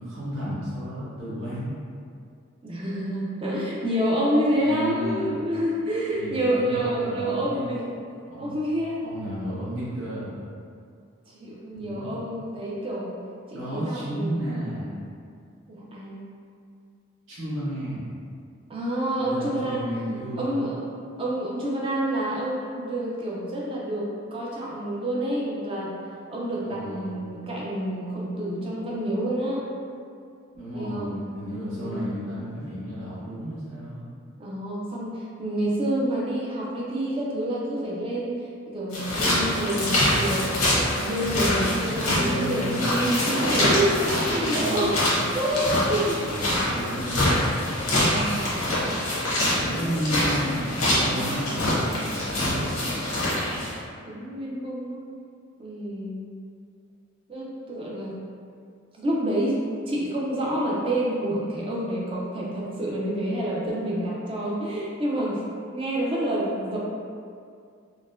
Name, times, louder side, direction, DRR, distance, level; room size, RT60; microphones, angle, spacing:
voice 1, 0.0-1.7 4.5-5.2 6.1-7.6 8.3-8.5 9.0-10.4 11.7-12.1 13.5-15.0 17.3-18.1 19.1-20.7 26.6-27.1 30.5-34.0 42.1-42.9 44.4-45.2 46.1-47.4 49.6-52.6, equal, 65° right, -10 dB, 1.2 m, -33 dB
voice 2, 2.6-7.8 8.4-9.0 11.3-13.2 13.5-14.4 15.7-16.2 18.7-19.9 20.4-20.8 21.2-26.0 26.3-29.7 30.7-31.1 31.8-32.1 34.4-38.4 38.7-45.0 45.3-46.3 47.9-48.4 54.1-55.0 55.6-56.3 57.3-58.1 59.0-59.6 59.9-66.8, right 1 dB, 25° right, -5 dB, 0.5 m, -28 dB
sound 1, 38.9-53.7, left 1 dB, 85° left, 0.9 m, -25 dB
3.9 x 2.1 x 2.5 m, 2.3 s
head